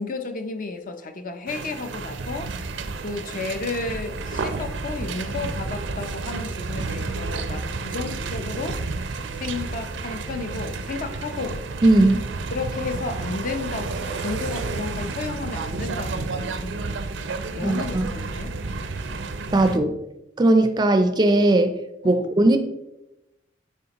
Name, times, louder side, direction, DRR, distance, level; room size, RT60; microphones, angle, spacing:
voice 1, 0.0-2.5 3.0-8.8 9.4-11.6 12.5-17.0 17.5-18.5 22.0-22.3, left 3 dB, 45° left, 0.6 m, -32 dB
sound 1, 1.5-19.8, right 3 dB, 85° right, 0.6 m, -31 dB
voice 2, 11.8-12.3 17.6-18.1 19.5-20.0 20.4-21.8 22.0-22.6, right 2 dB, 25° right, 0.4 m, -18 dB
9.3 x 4.1 x 2.9 m
head